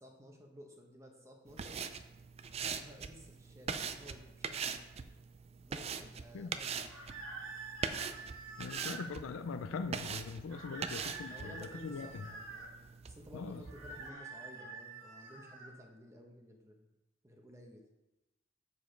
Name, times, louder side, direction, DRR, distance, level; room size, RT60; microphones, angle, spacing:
voice 1, 0.0-1.8 2.5-4.8 5.6-6.9 10.6-12.7 13.1-16.9 17.2-17.8, equal, 15° right, 2 dB, 0.9 m, -54 dB
sound 1, 1.5-14.1, right 6 dB, 30° right, 0.3 m, -43 dB
sound 2, 6.9-9.1 10.5-12.7 13.6-15.7, right 3 dB, 70° right, 1.8 m, -47 dB
voice 2, 8.6-12.2 13.3-13.6, left 4 dB, 75° left, 10 dB, 0.4 m, -41 dB
6.9 x 4.9 x 4.5 m, 1.0 s
head